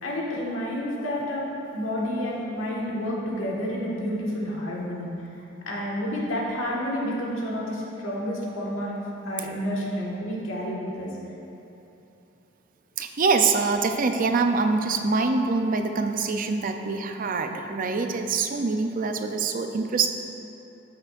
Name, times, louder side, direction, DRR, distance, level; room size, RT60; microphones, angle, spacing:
voice 1, 0.0-5.1 5.6-9.0 9.2-11.1, equal, 80° left, -4 dB, 1.6 m, -30 dB
voice 2, 13.0-20.1, right 4 dB, 45° right, 5 dB, 0.5 m, -24 dB
14.0 x 6.0 x 2.5 m, 2.9 s
head